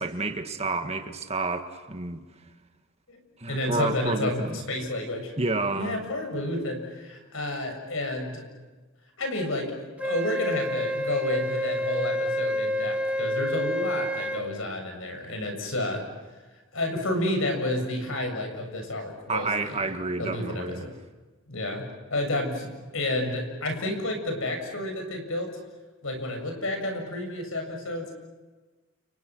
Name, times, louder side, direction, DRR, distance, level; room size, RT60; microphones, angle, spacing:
voice 1, 0.0-2.2 3.4-4.6 5.4-5.9 19.3-20.9, right 3 dB, 30° right, 1.8 m, -29 dB
voice 2, 3.5-5.3 5.7-8.4 9.2-9.7 10.0-16.0 16.7-19.8 20.2-20.9 21.5-25.6 26.0-28.1, left 1 dB, 65° left, 7.4 m, -30 dB
Wind instrument woodwind instrument, 10.0-14.4, equal, 5° right, 2.6 m, -28 dB
30.0 x 30.0 x 6.2 m
head